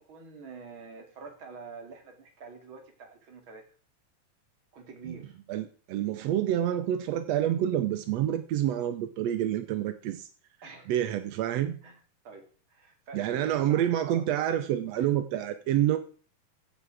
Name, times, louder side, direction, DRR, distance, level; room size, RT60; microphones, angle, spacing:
voice 1, 0.0-3.7 4.7-5.4 10.6-10.9 11.8-12.0 12.2-14.3 14.9-15.1, right 4 dB, 40° right, 2.8 m, -46 dB
voice 2, 5.5-10.3 10.9-11.8 13.1-16.0, right 11 dB, 75° right, 1.5 m, -28 dB
15.5 x 7.2 x 4.8 m
omnidirectional pair, 4.0 m